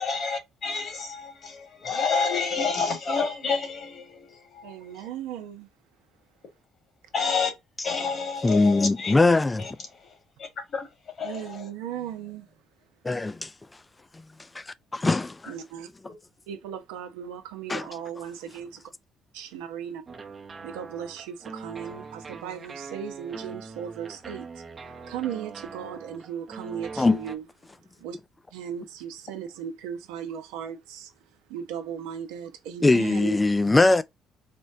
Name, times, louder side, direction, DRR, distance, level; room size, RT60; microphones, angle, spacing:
voice 1, 0.0-5.1 7.1-7.5 7.8-9.1 9.6-9.7 10.0-10.1 10.4-10.9 11.2-11.6 16.0-16.1, left 5 dB, 55° left, 1.6 m, -29 dB
voice 2, 4.6-5.7 11.2-12.4 15.5-15.9 16.5-18.7 19.4-20.0 20.6-24.6 25.0-27.4 28.0-28.2 28.5-31.1 31.5-33.4, right 9 dB, 85° right, 0.7 m, -36 dB
voice 3, 8.4-9.6 13.0-13.5 14.5-14.7 15.0-15.3 17.7-17.9 27.0-27.2 32.8-34.0, left 2 dB, 20° left, 0.4 m, -21 dB
sound 1, 20.1-27.4, right 4 dB, 35° right, 0.8 m, -42 dB
4.3 x 2.1 x 2.6 m
supercardioid pair, 65°, 0 cm